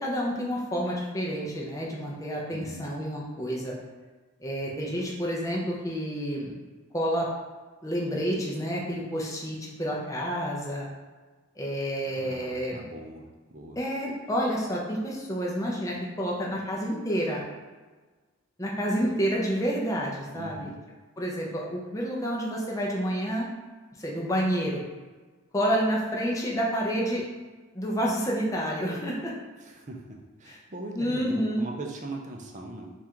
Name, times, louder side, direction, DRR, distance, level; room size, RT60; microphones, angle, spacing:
voice 1, 0.0-3.7 4.4-6.5 6.9-7.3 7.8-10.9 11.6-12.9 13.8-17.4 18.6-20.7 21.2-23.5 24.0-24.8 25.5-27.2 27.7-29.3 30.5-30.6 30.9-31.7, equal, 15° left, -3 dB, 0.5 m, -29 dB
voice 2, 2.5-2.9 12.1-13.8 20.3-20.8 29.6-32.9, right 2 dB, 35° right, 1 dB, 0.5 m, -40 dB
3.5 x 2.5 x 4.4 m, 1.3 s
head